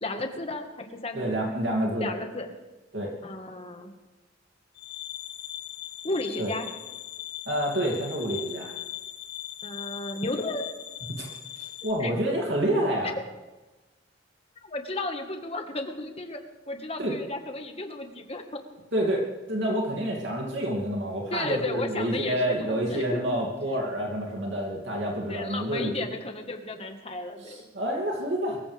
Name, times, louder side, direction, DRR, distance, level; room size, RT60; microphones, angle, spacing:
voice 1, 0.0-1.2 2.0-2.5 3.2-3.9 6.0-6.7 9.6-10.7 12.0-12.1 14.6-16.4 16.7-18.6 21.3-23.2 25.3-27.6, left 2 dB, 30° left, 5 dB, 1.6 m, -33 dB
voice 2, 1.1-2.1 2.9-3.1 6.4-6.5 7.5-8.7 11.1-11.3 11.6-13.1 17.0-17.2 18.9-19.2 19.5-25.9 27.4-28.6, right 1 dB, 65° right, -2 dB, 2.7 m, -28 dB
sound 1, 4.7-11.9, left 12 dB, 80° left, 4.7 m, -39 dB
23.0 x 15.0 x 3.5 m, 1.2 s
head